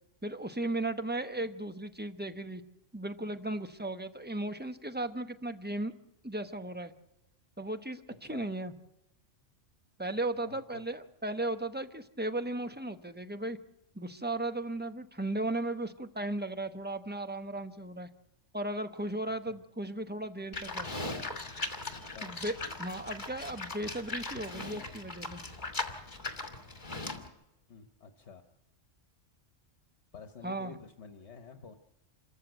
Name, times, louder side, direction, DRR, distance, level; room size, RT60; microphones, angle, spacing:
voice 1, 0.2-2.6 2.9-5.9 6.2-6.9 7.6-8.7 10.0-13.6 13.9-18.1 18.5-20.9 22.2-22.5 22.8-25.4 30.4-30.7, right 1 dB, 10° right, 8 dB, 1.0 m, -36 dB
voice 2, 10.3-10.8 19.4-19.6 22.1-22.4 27.7-28.4 30.1-31.7, left 5 dB, 65° left, 7 dB, 1.4 m, -50 dB
Livestock farm animals working animals, 20.5-27.3, left 2 dB, 40° left, 2.4 m, -39 dB
27.0 x 14.5 x 7.9 m, 0.91 s
omnidirectional pair, 1.3 m